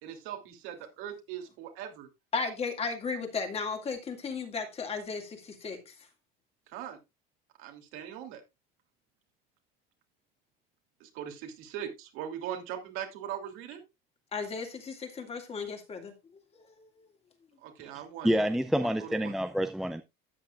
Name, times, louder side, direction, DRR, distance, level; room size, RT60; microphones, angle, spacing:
voice 1, 0.0-2.1 6.7-7.0 7.6-8.4 11.0-13.8 17.6-18.3 18.8-19.3, right 10 dB, 75° right, 2.9 m, -40 dB
voice 2, 2.3-5.9 14.3-16.1 16.6-16.9, left 5 dB, 30° left, 2.2 m, -35 dB
voice 3, 18.2-20.0, equal, ahead, 0.5 m, -27 dB
13.0 x 8.8 x 2.4 m
cardioid pair, 140°, 21 cm